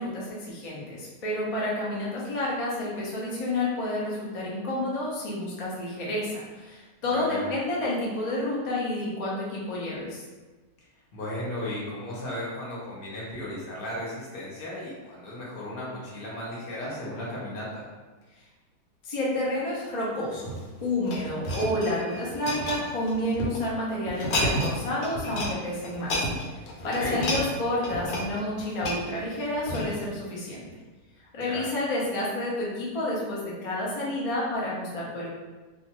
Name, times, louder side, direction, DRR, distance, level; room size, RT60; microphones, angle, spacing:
voice 1, 0.0-10.2 19.0-20.5 20.8-30.7 31.3-35.3, left 1 dB, 70° left, -5 dB, 0.3 m, -30 dB
voice 2, 7.1-7.5 11.1-17.8 26.8-27.2 31.4-31.7, left 1 dB, 45° left, -6 dB, 0.9 m, -35 dB
sound 1, 20.4-23.6 24.1-24.8 25.0-25.5 25.8-30.1 30.7-30.8, equal, 85° left, 1.2 m, -31 dB
2.5 x 2.5 x 2.9 m, 1.3 s
omnidirectional pair, 1.7 m